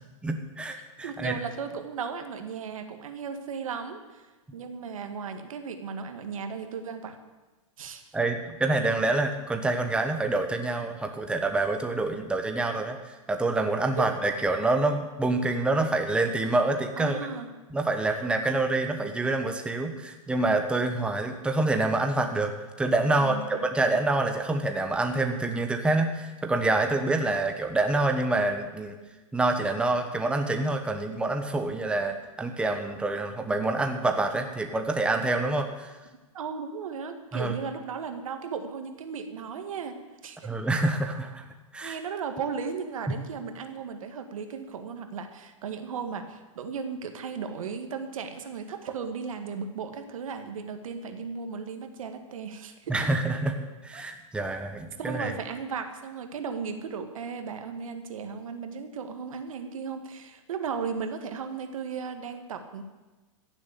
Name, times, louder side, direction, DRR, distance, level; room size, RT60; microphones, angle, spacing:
voice 1, 0.2-1.4 8.1-17.2 17.7-22.5 22.8-28.9 29.3-35.9 37.3-37.5 40.4-42.0 52.9-53.6 53.8-55.3, right 2 dB, 5° right, 5 dB, 1.1 m, -27 dB
voice 2, 1.0-4.3 4.5-7.2 7.8-8.0 14.0-14.1 17.0-17.5 23.2-23.9 36.3-39.9 40.2-40.5 41.8-52.9 53.9-54.0 55.0-62.8, right 6 dB, 80° right, 7 dB, 1.9 m, -36 dB
15.0 x 7.4 x 8.3 m, 1.2 s
hypercardioid pair, 130°, 17 cm